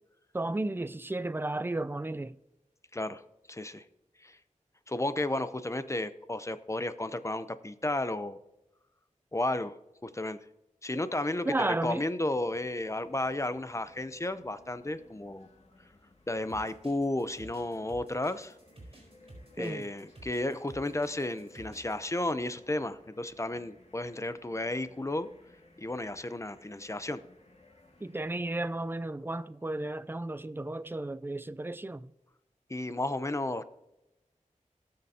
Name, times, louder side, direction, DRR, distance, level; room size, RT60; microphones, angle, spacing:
voice 1, 0.3-2.4 11.5-12.1 19.6-19.9 28.0-32.1, right 2 dB, 15° right, 0.5 m, -33 dB
voice 2, 2.9-3.2 3.5-3.8 4.2-4.4 4.9-8.4 9.3-9.8 10.0-10.4 10.8-15.5 16.3-18.6 19.6-25.3 25.8-27.2 32.7-33.6, left 2 dB, 20° left, 0.7 m, -33 dB
sound 1, 12.3-28.4, left 2 dB, 55° left, 2.0 m, -60 dB
sound 2, 16.5-22.0, right 1 dB, 45° right, 3.9 m, -51 dB
18.5 x 6.7 x 2.8 m
wide cardioid pair, 60°, 13 cm